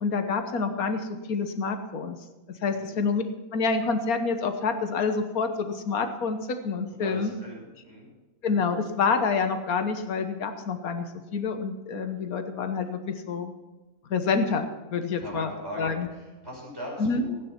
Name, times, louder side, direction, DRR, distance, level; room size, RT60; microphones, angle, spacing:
voice 1, 0.0-2.2 2.6-3.2 3.5-7.3 8.4-11.1 11.3-13.5 14.1-15.5 15.8-16.1 17.0-17.2, left 4 dB, 90° left, 7 dB, 1.6 m, -27 dB
voice 2, 2.6-3.0 6.9-8.1 15.2-17.4, equal, 15° right, -5 dB, 6.3 m, -40 dB
16.0 x 9.3 x 5.8 m, 1.1 s
omnidirectional pair, 1.5 m